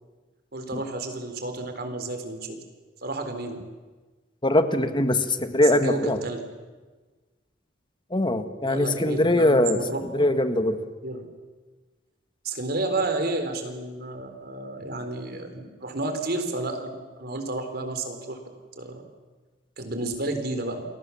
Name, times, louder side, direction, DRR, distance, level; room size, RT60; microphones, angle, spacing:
voice 1, 0.5-2.6 3.0-3.6 5.6-6.4 8.6-10.3 11.0-11.2 12.4-18.4 18.8-19.0 19.8-20.8, right 2 dB, 60° right, 7 dB, 4.0 m, -31 dB
voice 2, 4.4-6.2 8.1-10.8, left 1 dB, 25° left, 9 dB, 1.7 m, -22 dB
29.0 x 22.0 x 7.2 m, 1.3 s
head